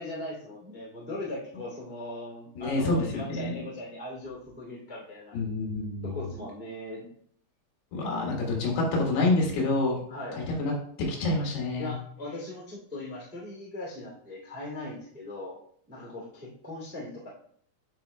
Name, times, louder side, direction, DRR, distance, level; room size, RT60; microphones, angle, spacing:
voice 1, 0.0-5.4 6.0-7.1 8.2-8.4 10.1-10.4 11.8-15.6 15.9-17.3, left 1 dB, 10° right, -4 dB, 0.6 m, -39 dB
voice 2, 2.6-3.6 5.3-6.2 7.9-10.0 10.3-10.7 11.0-11.9, left 2 dB, 75° left, -1 dB, 3.5 m, -27 dB
9.4 x 5.1 x 2.2 m, 0.62 s
omnidirectional pair, 4.9 m